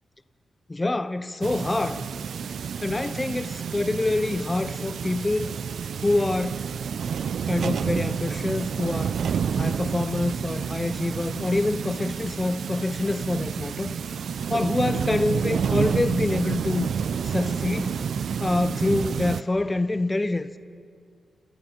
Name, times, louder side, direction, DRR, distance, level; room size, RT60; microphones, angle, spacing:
voice 1, 0.7-2.1 2.8-5.6 6.0-6.6 7.5-9.2 9.5-14.0 14.5-16.9 17.2-18.0 18.4-20.6, left 2 dB, 15° left, 0.6 m, -26 dB
sound 1, 1.4-19.4, right 7 dB, 65° right, 0.5 m, -29 dB
29.5 x 28.0 x 4.4 m
wide cardioid pair, 150°, 0 cm